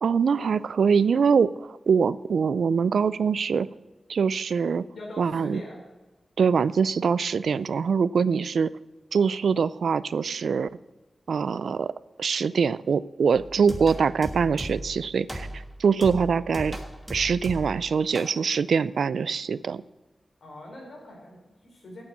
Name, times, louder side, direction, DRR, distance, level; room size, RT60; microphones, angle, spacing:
voice 1, 0.0-3.7 4.1-4.8 5.2-5.6 6.4-8.7 9.1-10.7 11.3-11.9 12.2-16.8 17.1-19.8, right 6 dB, 90° right, 17 dB, 0.3 m, -23 dB
voice 2, 4.9-5.8 20.4-22.0, left 1 dB, 75° left, -1 dB, 4.4 m, -42 dB
sound 1, 13.3-15.0 15.3-15.7 16.0-17.8 18.1-18.4, right 1 dB, ahead, 1.5 m, -36 dB
8.8 x 8.2 x 8.2 m, 1.1 s
wide cardioid pair, 160°, 0 cm